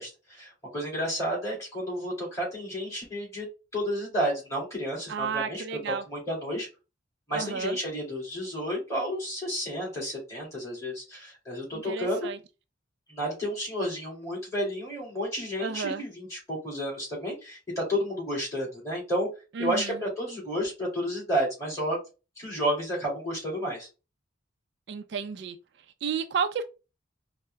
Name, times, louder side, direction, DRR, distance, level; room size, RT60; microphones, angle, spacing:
voice 1, 0.0-3.5 3.7-6.7 7.3-12.3 13.1-19.3 19.6-22.0 22.4-23.9, equal, 15° left, 2.3 m, -31 dB
voice 2, 5.1-6.0 7.3-7.8 11.9-12.4 15.6-16.0 19.6-20.0 24.9-25.6 26.0-26.6, right 6 dB, 60° right, 0.4 m, -31 dB
4.5 x 2.0 x 3.3 m
head